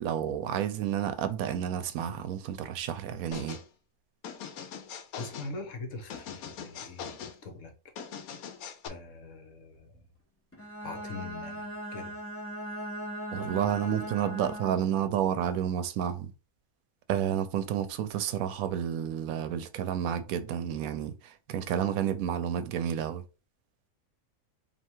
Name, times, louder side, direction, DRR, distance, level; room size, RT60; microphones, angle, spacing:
voice 1, 0.0-3.6 13.3-16.3 17.1-23.2, right 9 dB, 80° right, 1.0 m, -30 dB
sound 1, 3.3-3.7 4.2-5.5 6.1-7.4 8.0-8.9, left 7 dB, 85° left, 1.1 m, -41 dB
voice 2, 5.2-7.9 8.8-10.1 10.8-12.2, left 3 dB, 65° left, 1.2 m, -43 dB
Bowed string instrument, 10.5-15.0, right 1 dB, 10° left, 0.8 m, -39 dB
3.2 x 2.8 x 4.4 m
omnidirectional pair, 1.5 m